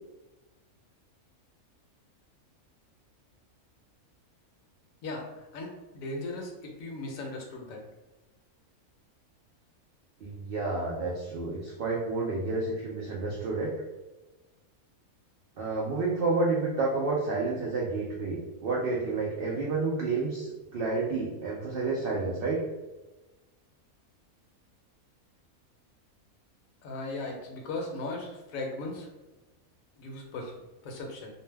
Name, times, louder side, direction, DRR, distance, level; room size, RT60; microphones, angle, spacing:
voice 1, 5.5-7.8 26.8-29.1 30.0-30.5 30.8-31.3, left 2 dB, 75° left, 1 dB, 1.0 m, -37 dB
voice 2, 10.2-13.7 15.6-22.6, right 3 dB, 80° right, -4 dB, 0.5 m, -30 dB
2.5 x 2.1 x 3.3 m, 1.1 s
omnidirectional pair, 1.5 m